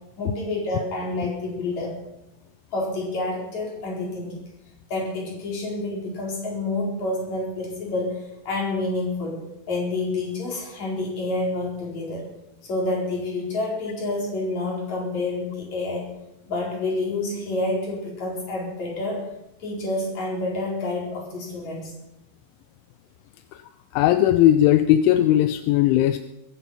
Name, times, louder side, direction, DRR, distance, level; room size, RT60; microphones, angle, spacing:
voice 1, 0.2-2.0 2.7-4.4 4.9-12.2 12.6-16.1 16.5-19.3 19.6-21.9, left 2 dB, 40° left, -2 dB, 5.6 m, -28 dB
voice 2, 23.9-26.2, left 12 dB, 85° left, 10 dB, 3.0 m, -18 dB
22.0 x 11.0 x 5.7 m, 0.92 s
omnidirectional pair, 5.5 m